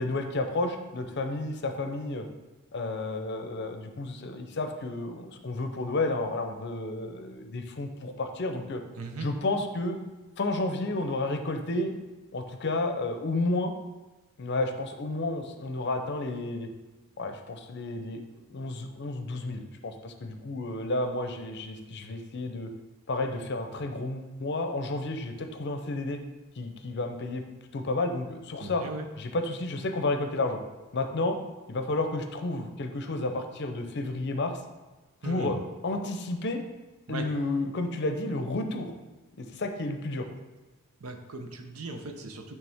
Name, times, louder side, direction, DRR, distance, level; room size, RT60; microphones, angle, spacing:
voice 1, 0.0-2.3 2.7-8.8 9.2-10.0 10.4-11.9 12.3-13.7 14.4-16.7 17.2-18.2 18.5-22.7 23.1-26.2 26.6-27.4 27.7-28.8 29.2-30.6 30.9-31.4 31.7-34.6 35.2-35.6 35.8-36.6 37.1-38.9 39.4-40.3, left 2 dB, 55° left, 6 dB, 0.6 m, -31 dB
voice 2, 9.0-9.3 28.6-29.0 35.2-35.5 37.1-37.3 41.0-42.6, right 3 dB, 90° right, 5 dB, 0.7 m, -38 dB
8.8 x 3.3 x 3.5 m, 1.2 s
head